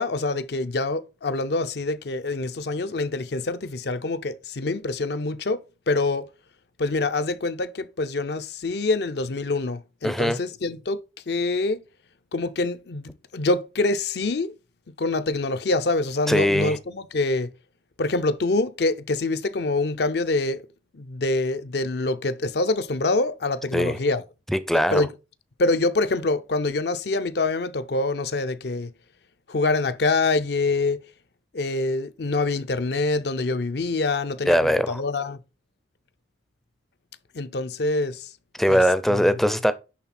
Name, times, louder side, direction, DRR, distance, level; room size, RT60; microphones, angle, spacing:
voice 1, 0.0-6.3 6.8-11.0 11.3-11.8 12.3-14.5 15.0-17.5 18.0-20.6 20.9-24.2 24.9-25.1 25.6-28.9 29.5-31.0 31.5-35.4 37.3-38.3 38.7-38.8 39.1-39.3, left 2 dB, 60° left, 0.6 m, -25 dB
voice 2, 10.0-10.4 16.3-16.8 23.7-24.0 24.5-25.1 34.4-35.0 38.6-39.7, equal, ahead, 0.5 m, -21 dB
10.5 x 3.6 x 4.2 m
head